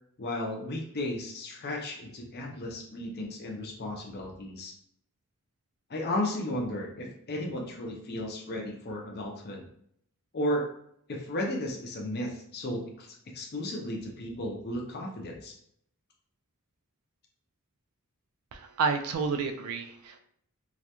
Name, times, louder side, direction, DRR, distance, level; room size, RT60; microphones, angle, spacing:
voice 1, 0.2-4.7 5.9-9.7 10.3-10.6 11.1-13.1 13.3-15.5, left 1 dB, 45° left, 0 dB, 0.5 m, -34 dB
voice 2, 18.5-20.2, right 4 dB, 85° right, 6 dB, 0.3 m, -30 dB
2.4 x 2.1 x 2.8 m, 0.69 s
head